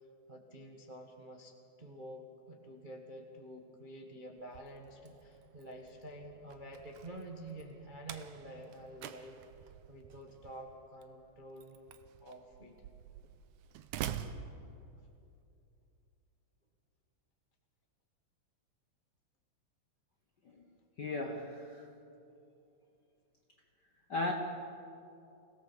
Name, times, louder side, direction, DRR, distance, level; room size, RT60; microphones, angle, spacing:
voice 1, 0.3-11.8 12.2-12.9, right 1 dB, 30° right, 1 dB, 0.8 m, -49 dB
Slam, 4.4-15.3, right 9 dB, 85° right, 2.2 m, -47 dB
voice 2, 21.0-21.9 24.1-24.3, left 2 dB, 55° left, 2 dB, 1.2 m, -36 dB
25.0 x 17.0 x 7.2 m, 2.7 s
omnidirectional pair, 3.4 m